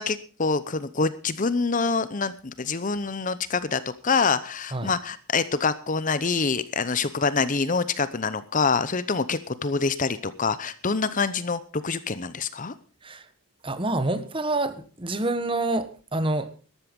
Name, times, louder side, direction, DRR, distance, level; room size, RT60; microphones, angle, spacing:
voice 1, 0.0-12.7, left 4 dB, 35° left, 0.7 m, -26 dB
voice 2, 13.6-16.7, right 2 dB, 25° right, 1.2 m, -27 dB
13.5 x 12.5 x 5.3 m
head